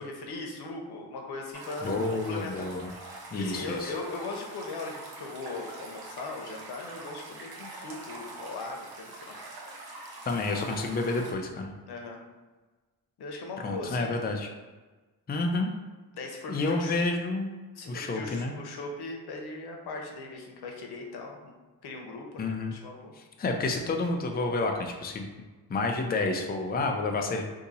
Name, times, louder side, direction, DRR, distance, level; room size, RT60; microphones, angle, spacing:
voice 1, 0.0-2.9 3.4-9.4 11.8-12.2 13.2-14.2 16.1-17.0 17.7-21.5 21.8-23.1, left 3 dB, 90° left, 1 dB, 0.7 m, -39 dB
sound 1, 1.5-11.3, right 2 dB, 75° right, 0.9 m, -44 dB
voice 2, 1.8-2.9 3.3-3.9 10.3-11.7 13.6-14.5 15.3-15.7 16.5-17.5 17.9-18.5 22.4-22.7 23.4-25.3 25.7-27.4, left 3 dB, 25° left, 3 dB, 0.4 m, -29 dB
2.7 x 2.7 x 3.9 m, 1.3 s
cardioid pair, 90°, 38 cm